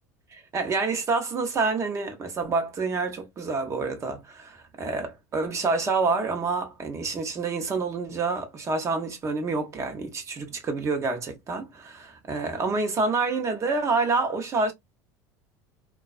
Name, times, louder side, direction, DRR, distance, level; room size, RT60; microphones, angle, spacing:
voice 1, 0.3-14.7, right 4 dB, 30° right, 0.8 m, -28 dB
2.3 x 2.3 x 2.3 m
supercardioid pair, 95°, 9 cm